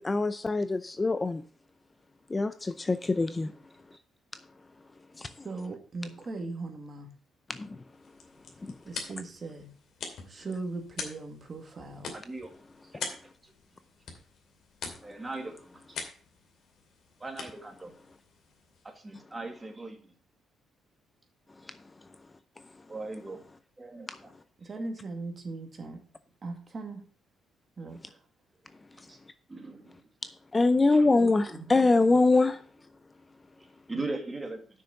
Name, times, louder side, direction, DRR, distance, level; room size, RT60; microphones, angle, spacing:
voice 1, 0.0-1.4 2.3-3.5 5.2-5.3 7.6-7.7 30.5-32.6, left 3 dB, 25° left, 11 dB, 0.6 m, -24 dB
voice 2, 5.4-7.1 8.8-9.7 10.3-12.1 24.6-26.0 26.4-27.1 27.8-28.2, right 3 dB, 35° right, 4 dB, 2.1 m, -39 dB
sound 1, 7.9-19.1, left 5 dB, 70° left, 2.5 m, -44 dB
voice 3, 12.1-12.5 15.0-15.8 17.2-17.9 18.8-20.0 22.9-23.4 23.8-24.3 29.1-29.2 29.5-29.9 30.9-31.6 33.9-34.6, right 2 dB, 20° right, 4 dB, 2.3 m, -39 dB
6.6 x 6.3 x 7.0 m, 0.43 s
cardioid pair, 90°, 0 cm